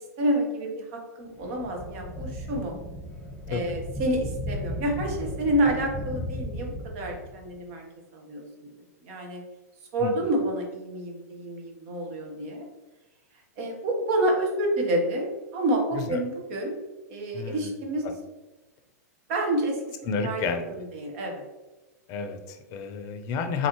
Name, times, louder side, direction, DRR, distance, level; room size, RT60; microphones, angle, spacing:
voice 1, 0.2-2.7 3.5-7.8 8.1-8.7 9.0-9.4 9.9-12.6 13.6-16.7 17.1-18.0 19.3-19.8 20.2-21.4, right 1 dB, 50° right, 1 dB, 1.2 m, -28 dB
sound 1, 1.4-7.5, left 1 dB, 5° left, 1.1 m, -36 dB
voice 2, 10.0-10.3 15.9-16.2 17.3-17.8 18.0-18.1 20.0-20.8 22.1-23.7, left 5 dB, 40° left, 7 dB, 0.6 m, -31 dB
4.1 x 4.0 x 3.1 m, 1.1 s
hypercardioid pair, 105°, 9 cm